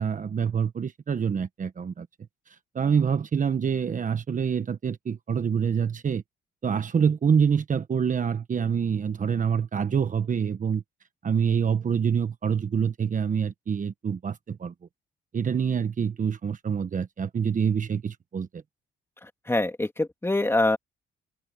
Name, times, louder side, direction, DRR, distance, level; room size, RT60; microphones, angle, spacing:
voice 1, 0.0-2.1 2.7-6.2 6.6-10.8 11.2-14.7 15.3-18.6, right 7 dB, 40° right, 1.3 m, -26 dB
voice 2, 19.2-20.8, left 2 dB, 10° left, 2.4 m, -25 dB
cardioid pair, 90°, 20 cm